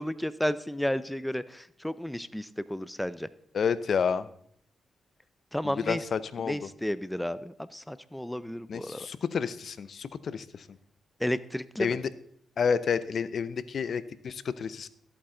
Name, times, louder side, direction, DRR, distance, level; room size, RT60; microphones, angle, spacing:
voice 1, 0.0-3.3 5.5-6.1 6.4-9.1 11.2-12.0, left 1 dB, 5° left, 15 dB, 0.5 m, -32 dB
voice 2, 3.5-4.2 5.9-6.6 8.7-10.4 11.8-12.0 12.6-14.9, left 6 dB, 60° left, 16 dB, 0.6 m, -29 dB
14.0 x 8.6 x 3.8 m, 0.66 s
cardioid pair, 70°, 0 cm